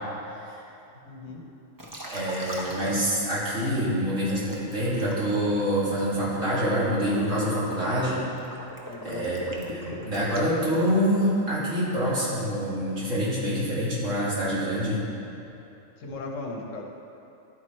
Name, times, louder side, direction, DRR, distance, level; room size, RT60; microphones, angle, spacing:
voice 1, 0.2-0.6 2.1-8.2 9.0-15.0, equal, 70° right, -9 dB, 2.5 m, -26 dB
voice 2, 1.0-1.4 8.9-9.3 16.0-16.8, left 3 dB, 75° left, 1 dB, 1.2 m, -37 dB
Liquid, 1.8-3.8 4.3-11.3, equal, 20° right, 0.6 m, -41 dB
11.0 x 4.7 x 4.3 m, 2.9 s
omnidirectional pair, 1.4 m